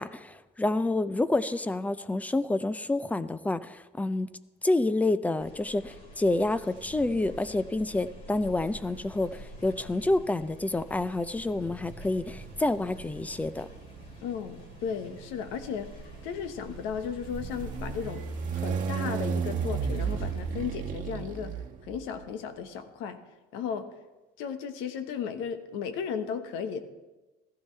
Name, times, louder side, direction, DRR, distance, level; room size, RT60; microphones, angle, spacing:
voice 1, 0.0-4.3 4.6-13.7, left 2 dB, 5° left, 15 dB, 0.4 m, -28 dB
sound 1, 5.4-20.8, right 1 dB, 45° left, 3.6 m, -47 dB
sound 2, 6.8-7.5 8.6-22.3, right 6 dB, 40° right, 1.3 m, -36 dB
voice 2, 14.2-21.5 21.8-23.2 23.5-24.0 24.4-26.8, left 7 dB, 75° left, 9 dB, 1.2 m, -35 dB
15.5 x 14.5 x 3.2 m, 1.1 s
cardioid pair, 140°, 20 cm